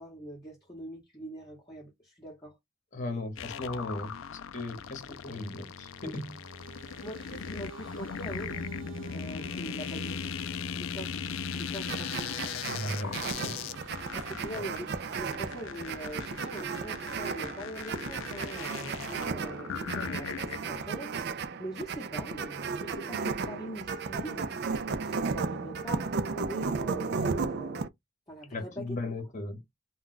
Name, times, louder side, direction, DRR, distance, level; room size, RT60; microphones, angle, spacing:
voice 1, 0.0-2.6 7.0-8.6 9.1-10.2 10.8-11.1 11.5-12.3 14.1-24.6 25.0-27.9 28.3-29.0, right 1 dB, 20° left, 0.9 m, -43 dB
voice 2, 2.9-4.1 4.5-6.4 12.7-13.6 14.5-14.7 28.5-29.6, left 2 dB, 40° left, 0.9 m, -37 dB
sound 1, 3.4-20.8, left 7 dB, 85° left, 0.4 m, -39 dB
sound 2, 4.9-17.3, right 4 dB, 70° right, 0.8 m, -52 dB
sound 3, 11.9-27.9, right 5 dB, 55° right, 0.4 m, -34 dB
2.3 x 2.2 x 3.7 m
head